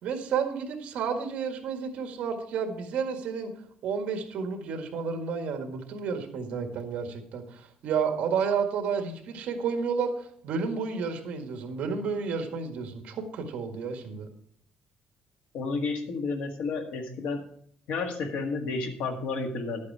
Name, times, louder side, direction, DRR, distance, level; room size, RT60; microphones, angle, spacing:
voice 1, 0.0-3.5 3.8-14.3, right 6 dB, 60° right, 5 dB, 1.8 m, -31 dB
voice 2, 15.5-17.4 17.9-19.9, left 4 dB, 75° left, 4 dB, 1.8 m, -31 dB
11.5 x 8.5 x 4.7 m, 0.64 s
cardioid pair, 175°, 3 cm